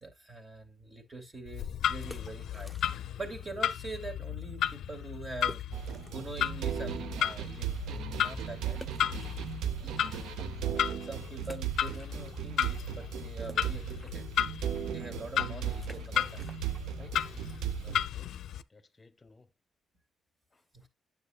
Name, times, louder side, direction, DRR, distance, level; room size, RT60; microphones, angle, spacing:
voice 1, 0.0-2.8 3.2-5.6 6.1-8.8 9.7-10.0 10.6-14.2 14.7-16.4 17.0-17.1 20.7-20.8, right 3 dB, 25° right, 2.5 m, -44 dB
Clock, 1.5-18.6, left 10 dB, 70° left, 0.5 m, -35 dB
sound 1, 2.0-3.3 3.5-3.6 4.2-4.3 4.6-4.7 5.4-6.3 6.8-6.9 8.7-10.1 10.6-10.7 11.4-12.6 12.8-18.3, left 1 dB, 5° left, 0.9 m, -52 dB
sound 2, 5.7-18.1, right 10 dB, 85° right, 0.6 m, -37 dB
voice 2, 17.2-18.3 18.7-19.5 20.5-20.9, left 3 dB, 25° left, 1.1 m, -60 dB
9.6 x 7.2 x 2.3 m
cardioid pair, 90°, 0 cm